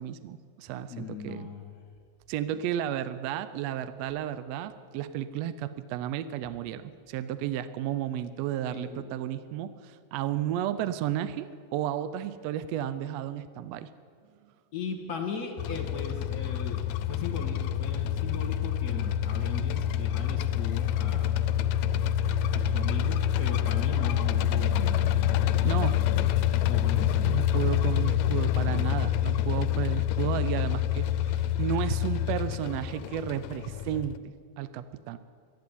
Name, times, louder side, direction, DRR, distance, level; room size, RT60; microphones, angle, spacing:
voice 1, 0.0-1.5 2.3-13.9 25.6-26.0 27.2-35.2, right 11 dB, 80° right, 13 dB, 1.5 m, -33 dB
voice 2, 0.9-1.6 8.7-9.1 14.7-16.8 17.1-21.4 22.5-25.0 26.5-27.4 30.4-30.5, left 4 dB, 40° left, 3 dB, 1.4 m, -38 dB
sound 1, 15.6-34.2, left 11 dB, 80° left, 1.8 m, -27 dB
12.0 x 11.5 x 9.6 m, 2.2 s
omnidirectional pair, 3.4 m